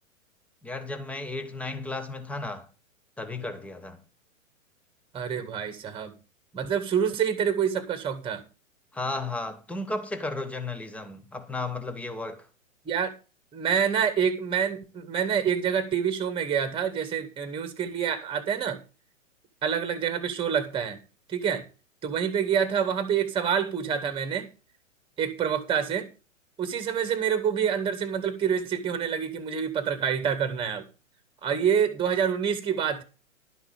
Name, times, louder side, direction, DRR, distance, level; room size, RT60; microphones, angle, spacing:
voice 1, 0.6-2.7 3.2-4.0 8.9-12.5, left 2 dB, 5° left, 1.1 m, -34 dB
voice 2, 5.1-6.1 6.5-8.4 12.9-13.1 13.5-18.8 19.6-21.0 21.3-21.7 22.0-24.5 25.2-26.1 26.6-30.8 31.4-33.0, right 7 dB, 15° right, 1.8 m, -27 dB
11.5 x 5.9 x 7.2 m
figure-of-eight pair, 115°, 40 cm